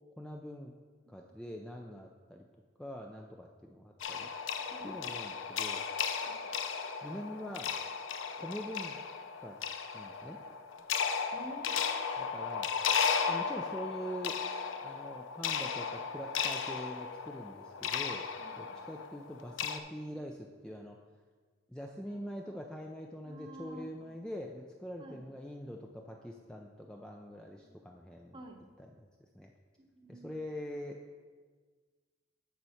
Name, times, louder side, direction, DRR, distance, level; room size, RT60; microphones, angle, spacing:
voice 1, 0.2-0.7 1.1-2.4 2.8-4.3 4.8-5.8 7.0-7.7 8.4-9.0 9.4-9.6 9.9-10.4 12.2-12.7 13.3-14.4 14.8-18.3 18.6-21.0 21.7-28.4 28.8-29.5 30.1-31.0, equal, 5° left, 0 dB, 0.4 m, -44 dB
sound 1, 4.0-19.8, left 6 dB, 80° left, 0.5 m, -35 dB
voice 2, 4.6-5.0 6.3-6.4 11.3-12.1 18.4-18.7 23.2-24.1 25.0-25.2 27.6-27.7 28.3-28.6 29.8-30.4, right 1 dB, 25° right, 3 dB, 0.8 m, -50 dB
9.6 x 4.5 x 5.7 m, 1.5 s
head